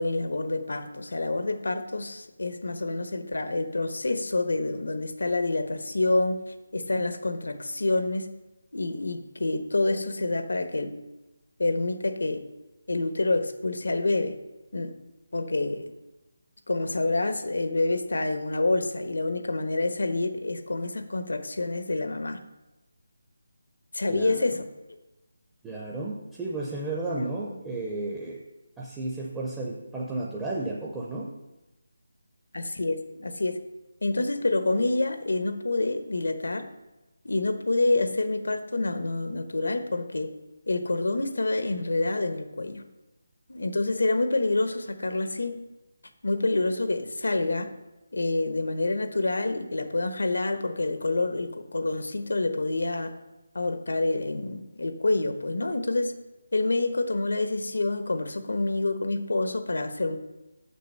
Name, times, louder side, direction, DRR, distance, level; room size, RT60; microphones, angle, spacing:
voice 1, 0.0-8.3 8.7-10.9 11.6-12.4 12.9-14.4 14.7-14.9 15.3-15.9 16.7-22.4 23.9-24.6 27.1-27.6 32.5-33.6 34.0-36.7 37.2-40.3 40.7-42.8 43.5-45.5 46.2-47.7 48.1-53.1 53.5-56.1 56.5-60.2, left 2 dB, 85° left, 9 dB, 1.0 m, -27 dB
voice 2, 24.1-24.4 25.6-28.4 28.8-31.3, right 2 dB, 5° right, -5 dB, 0.5 m, -33 dB
6.7 x 6.2 x 6.5 m, 1.0 s
figure-of-eight pair, 180°, 0 cm